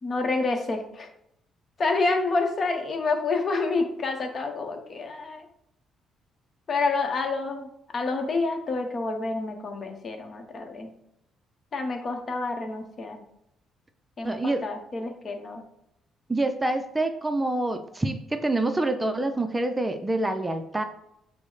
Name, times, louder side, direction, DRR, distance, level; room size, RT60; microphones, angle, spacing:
voice 1, 0.0-1.1 1.8-5.4 6.7-10.9 11.7-13.2 14.2-15.6, left 3 dB, 45° left, 5 dB, 0.9 m, -28 dB
voice 2, 14.2-14.6 16.3-20.8, right 2 dB, 15° right, 7 dB, 0.4 m, -26 dB
6.1 x 2.1 x 3.9 m, 0.78 s
cardioid pair, 80°, 0 cm